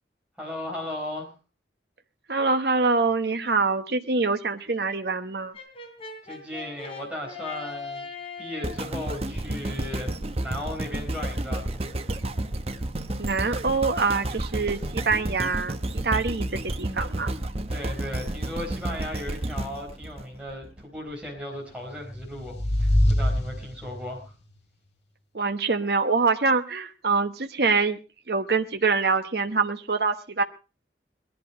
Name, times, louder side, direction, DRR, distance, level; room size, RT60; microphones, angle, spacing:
voice 1, 0.4-1.3 6.3-8.1 8.4-10.1 10.4-11.8 17.7-24.2, left 1 dB, 5° right, -2 dB, 4.2 m, -36 dB
voice 2, 2.3-5.5 13.2-15.8 16.0-17.3 25.3-28.0 28.3-30.4, right 4 dB, 60° right, 7 dB, 1.0 m, -25 dB
Brass instrument, 5.5-8.9, left 4 dB, 35° left, 3.3 m, -39 dB
sound 1, 8.6-20.8 21.4-21.5, right 1 dB, 35° right, 1.0 m, -31 dB
sound 2, 21.9-24.2, left 1 dB, 75° left, 2.2 m, -24 dB
20.0 x 11.5 x 4.8 m, 0.34 s
head